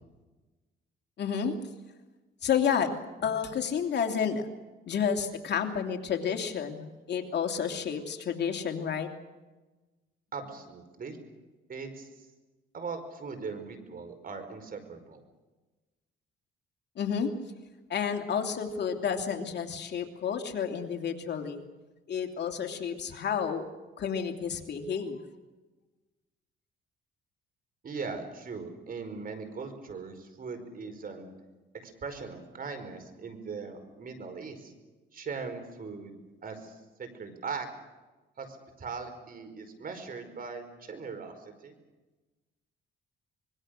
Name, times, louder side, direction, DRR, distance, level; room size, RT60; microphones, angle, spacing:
voice 1, 1.2-1.6 2.4-2.9 3.2-4.5 4.9-9.1 17.0-17.3 17.9-21.6 22.1-23.7 24.0-25.2, left 7 dB, 60° left, 4 dB, 2.8 m, -30 dB
voice 2, 10.3-11.2 11.7-12.1 12.7-15.2 27.8-31.3 31.8-34.7 35.1-37.7 38.4-41.7, right 4 dB, 45° right, 7 dB, 4.9 m, -40 dB
25.5 x 22.5 x 6.6 m, 1.2 s
cardioid pair, 90°, 20 cm